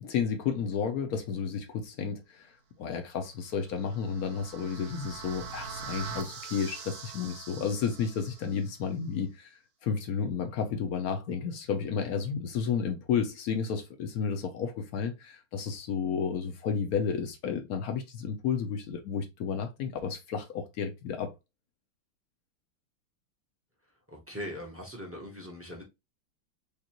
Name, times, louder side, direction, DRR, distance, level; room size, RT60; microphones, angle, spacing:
voice 1, 0.0-2.5 2.8-21.3, left 6 dB, 70° left, 0.8 m, -32 dB
sound 1, 3.6-8.7, right 6 dB, 65° right, 0.8 m, -43 dB
voice 2, 24.1-25.8, equal, 15° right, 0.5 m, -40 dB
5.1 x 2.4 x 2.9 m
omnidirectional pair, 2.3 m